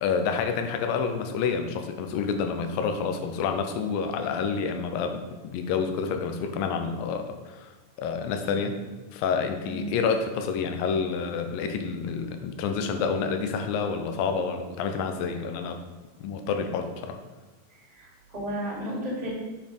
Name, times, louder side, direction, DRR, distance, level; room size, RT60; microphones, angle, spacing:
voice 1, 0.0-7.7 8.0-8.8 9.1-15.8 16.2-17.2, left 5 dB, 80° left, 6 dB, 2.4 m, -28 dB
voice 2, 18.0-19.3, equal, 15° right, -6 dB, 2.0 m, -33 dB
6.6 x 6.0 x 5.1 m, 1.2 s
omnidirectional pair, 4.2 m